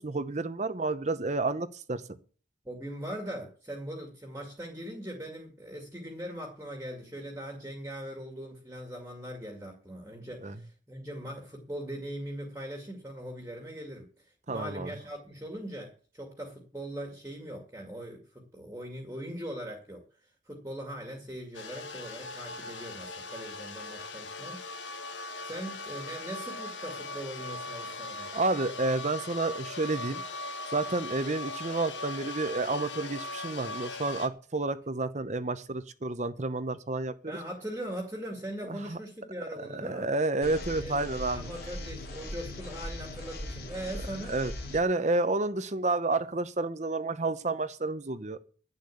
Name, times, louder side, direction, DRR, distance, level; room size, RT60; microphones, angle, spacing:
voice 1, 0.0-2.0 10.4-10.5 14.5-14.9 28.3-30.2 30.7-37.4 38.6-39.0 39.6-41.5 44.3-48.4, right 2 dB, 40° right, 11 dB, 0.8 m, -30 dB
voice 2, 2.6-25.1 25.4-28.3 37.3-40.1 40.8-41.0 41.3-44.3, right 1 dB, 15° right, 3 dB, 2.1 m, -40 dB
sound 1, 21.5-34.3, left 2 dB, 75° left, 1.6 m, -39 dB
sound 2, 40.4-44.8, left 1 dB, 55° left, 3.1 m, -39 dB
10.5 x 8.4 x 8.4 m, 0.42 s
head